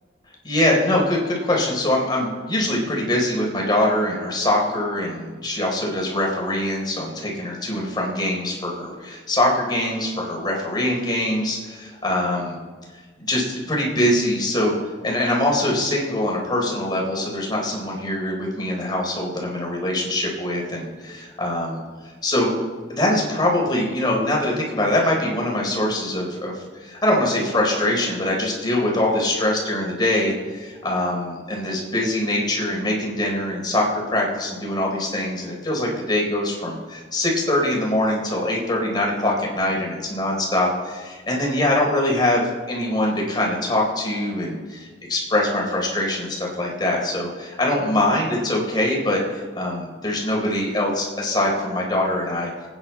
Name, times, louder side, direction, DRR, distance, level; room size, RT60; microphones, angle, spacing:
voice 1, 0.4-12.6 13.2-14.7 15.0-21.8 22.2-22.5 22.9-44.6 45.1-52.5, left 1 dB, 25° left, -2 dB, 3.9 m, -23 dB
25.5 x 9.6 x 4.4 m, 1.4 s
head